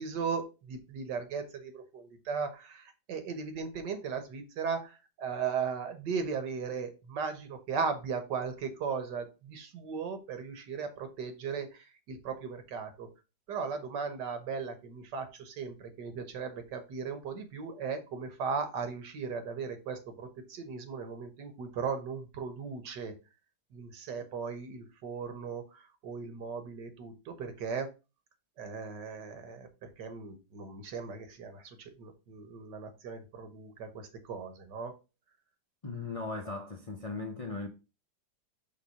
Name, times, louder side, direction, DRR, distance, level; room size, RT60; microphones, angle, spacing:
voice 1, 0.0-13.1 13.5-23.1 23.7-27.9 28.6-34.9, right 5 dB, 75° right, 1.7 m, -37 dB
voice 2, 35.8-37.7, left 3 dB, 70° left, 0.3 m, -38 dB
5.5 x 3.7 x 5.5 m
omnidirectional pair, 1.9 m